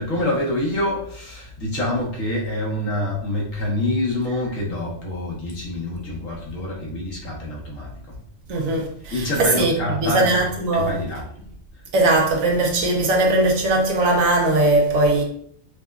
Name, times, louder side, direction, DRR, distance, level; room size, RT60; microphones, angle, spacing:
voice 1, 0.0-8.2 9.1-10.5 10.7-11.3, left 1 dB, 75° left, 1.4 m, -26 dB
voice 2, 8.5-9.7 10.0-10.9 11.9-15.2, right 2 dB, 80° right, 1.2 m, -19 dB
4.8 x 2.2 x 2.4 m
omnidirectional pair, 1.4 m